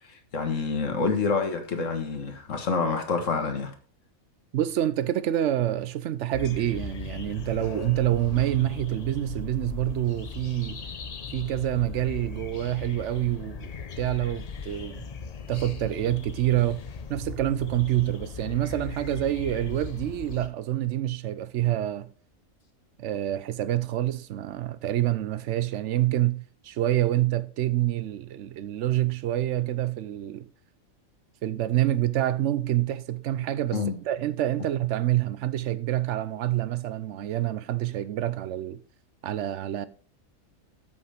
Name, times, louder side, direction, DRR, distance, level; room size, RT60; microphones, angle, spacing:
voice 1, 0.1-3.7 33.7-34.0, left 4 dB, 65° left, 1.8 m, -27 dB
voice 2, 4.5-10.8 11.3-13.7 14.0-15.0 15.5-16.8 17.1-22.1 23.0-30.5 31.4-33.8 34.0-38.8 39.2-39.9, right 13 dB, 70° right, 0.8 m, -27 dB
sound 1, 6.3-20.5, left 5 dB, 45° left, 0.5 m, -38 dB
7.9 x 5.7 x 4.9 m
omnidirectional pair, 1.4 m